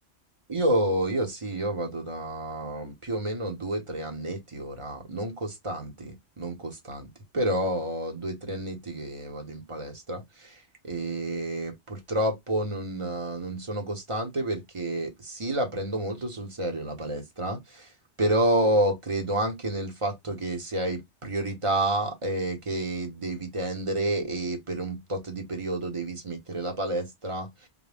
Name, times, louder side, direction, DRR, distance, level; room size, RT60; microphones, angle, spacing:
voice 1, 0.5-17.9 18.2-27.5, right 1 dB, 30° right, 0.9 m, -29 dB
3.8 x 2.2 x 3.3 m
omnidirectional pair, 1.1 m